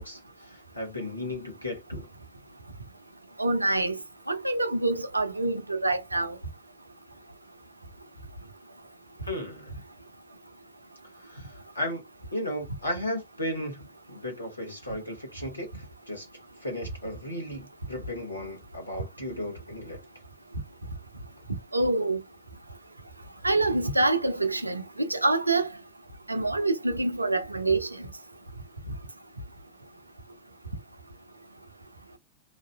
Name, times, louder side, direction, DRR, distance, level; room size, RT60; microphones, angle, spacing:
voice 1, 0.0-2.1 9.2-9.7 11.1-12.0 12.3-16.3 16.6-20.0, left 1 dB, 85° left, 1.4 m, -35 dB
voice 2, 3.4-3.9 4.3-6.4 21.7-22.2 23.4-25.7 26.3-27.9, right 2 dB, 85° right, 0.5 m, -26 dB
3.0 x 2.5 x 2.3 m
figure-of-eight pair, 90°, 0 cm